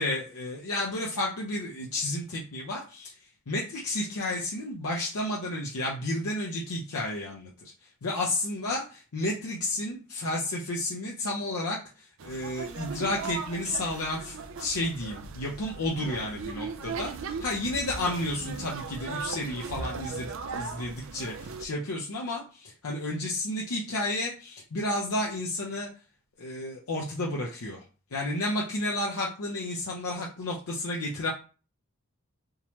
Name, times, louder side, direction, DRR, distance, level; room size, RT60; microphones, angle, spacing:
voice 1, 0.0-3.1 3.5-7.7 8.0-25.9 26.4-27.8 28.1-31.3, left 1 dB, 80° left, -2 dB, 0.7 m, -32 dB
sound 1, 12.2-21.7, right 5 dB, 60° right, 0.4 m, -38 dB
3.6 x 2.9 x 3.0 m, 0.35 s
head